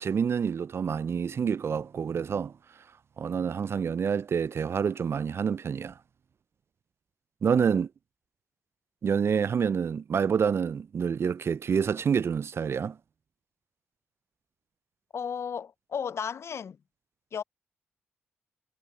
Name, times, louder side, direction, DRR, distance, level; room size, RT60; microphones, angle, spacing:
voice 1, 0.0-2.5 3.2-5.9 7.4-7.9 9.0-13.0, right 6 dB, 50° right, 0.4 m, -27 dB
voice 2, 15.1-16.8 17.3-17.4, left 7 dB, 55° left, 0.5 m, -34 dB
hypercardioid pair, 40°, 5 cm